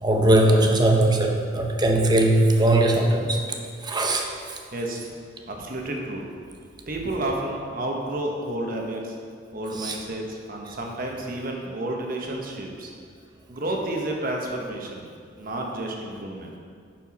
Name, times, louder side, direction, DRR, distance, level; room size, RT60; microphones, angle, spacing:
voice 1, 0.0-3.4 3.8-4.3 9.8-10.0, right 1 dB, 20° right, 2 dB, 0.7 m, -19 dB
voice 2, 4.7-5.1 5.5-6.2 6.9-9.1 9.5-12.9 13.5-15.1 15.4-16.5, right 1 dB, 50° right, 0 dB, 1.1 m, -30 dB
10.5 x 4.5 x 4.2 m, 2.2 s
head